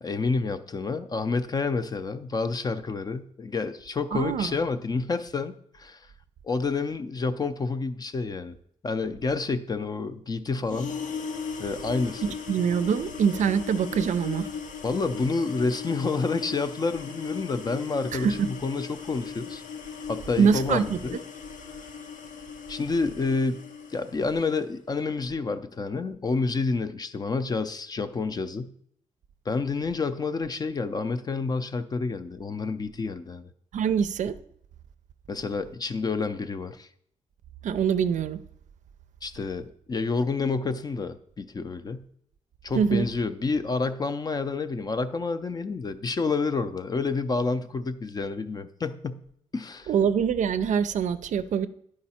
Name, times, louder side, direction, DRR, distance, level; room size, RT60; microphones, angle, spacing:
voice 1, 0.0-6.1 6.4-8.6 8.8-11.0 11.6-12.2 14.8-19.6 20.1-21.2 22.7-23.7 23.9-28.7 29.5-33.5 35.3-36.9 39.2-42.1 42.6-49.2 49.5-49.9, left 4 dB, 30° left, 0.5 m, -29 dB
voice 2, 4.1-4.5 12.5-14.5 18.1-18.5 20.4-21.0 33.7-34.3 37.6-38.4 42.8-43.0 49.9-51.7, right 7 dB, 70° right, 0.4 m, -24 dB
sound 1, 10.6-24.6, left 6 dB, 80° left, 0.8 m, -38 dB
11.0 x 4.8 x 4.2 m
wide cardioid pair, 140°, 13 cm